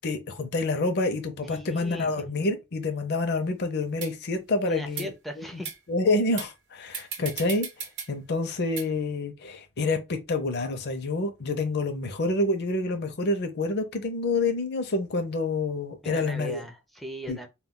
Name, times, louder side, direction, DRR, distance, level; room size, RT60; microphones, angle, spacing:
voice 1, 0.0-5.6 5.9-7.7 8.1-16.6 17.3-17.4, left 2 dB, 50° left, 0.6 m, -28 dB
voice 2, 1.5-2.3 4.6-5.7 16.0-17.5, equal, ahead, 0.4 m, -38 dB
sound 1, 3.4-3.5 4.0-4.1 4.9-5.1 5.7-5.8 6.4-6.5 6.9-8.1 8.8-8.9, right 7 dB, 60° right, 0.7 m, -35 dB
2.2 x 2.2 x 3.6 m
head